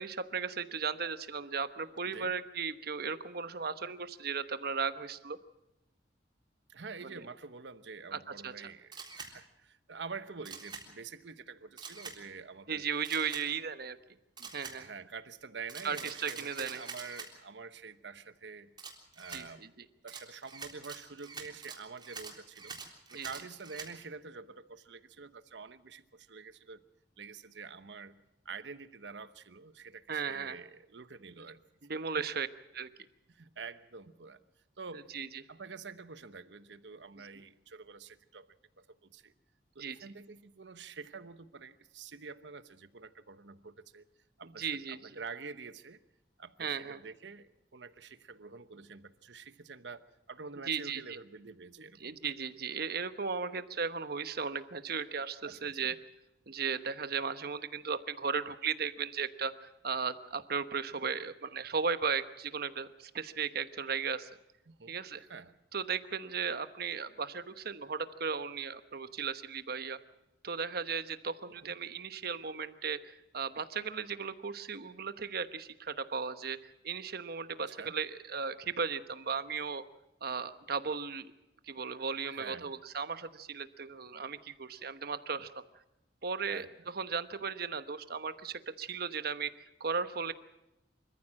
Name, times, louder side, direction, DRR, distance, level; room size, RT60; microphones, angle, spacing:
voice 1, 0.0-5.4 7.0-7.3 8.1-8.7 12.7-14.0 14.5-14.9 15.8-16.8 19.3-19.9 23.1-23.3 30.1-30.6 31.9-32.5 32.7-32.9 34.9-35.4 39.8-40.0 44.4-45.2 46.6-47.0 50.7-51.2 52.0-56.0 56.5-64.3 64.9-65.2 65.7-70.0 70.4-79.8 80.2-81.3 81.6-85.6 86.2-90.3, right 5 dB, 60° right, 11 dB, 1.1 m, -36 dB
voice 2, 6.7-12.9 14.4-18.7 19.2-19.7 20.0-22.8 23.1-26.8 27.2-28.2 28.4-31.6 32.1-32.2 33.3-34.4 34.8-35.1 35.5-38.5 38.8-39.3 39.7-44.1 44.4-46.0 46.4-52.2 55.4-55.9 64.7-65.5 71.6-71.7 77.8-78.0 82.3-82.7 86.5-86.7, right 5 dB, 85° right, 12 dB, 1.0 m, -47 dB
Camera, 8.9-9.3 10.5-10.8 11.8-12.2 13.0-13.4 14.4-14.8 15.7-17.3 18.8-19.4 20.1-23.9, right 5 dB, 25° right, 3.7 m, -45 dB
26.0 x 14.5 x 7.5 m, 0.94 s
head